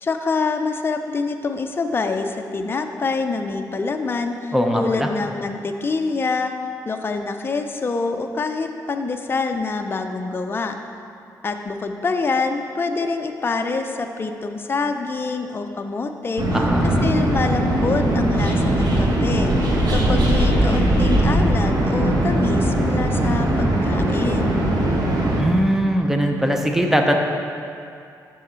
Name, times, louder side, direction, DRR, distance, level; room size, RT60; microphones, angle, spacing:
voice 1, 0.0-6.5 6.9-10.8 11.4-24.6, left 4 dB, 30° left, 5 dB, 0.5 m, -26 dB
voice 2, 4.5-5.1 16.5-17.2 25.4-27.1, equal, 5° right, 2 dB, 0.7 m, -20 dB
sound 1, 16.4-25.4, right 1 dB, 70° right, 1.1 m, -19 dB
6.3 x 6.2 x 4.4 m, 2.5 s
cardioid pair, 100°, 7 cm